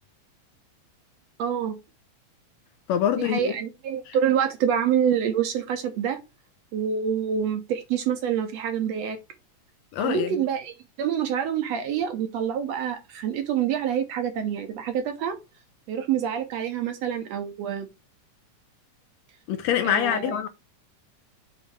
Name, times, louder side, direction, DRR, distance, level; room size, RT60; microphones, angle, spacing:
voice 1, 1.4-1.8 3.2-6.2 6.7-9.2 10.0-15.4 15.9-17.9 19.8-20.4, right 8 dB, 70° right, 2.0 m, -26 dB
voice 2, 2.9-3.5 4.1-4.2 9.9-10.3 19.5-20.5, left 10 dB, 75° left, 1.7 m, -25 dB
6.6 x 3.4 x 5.0 m
omnidirectional pair, 3.4 m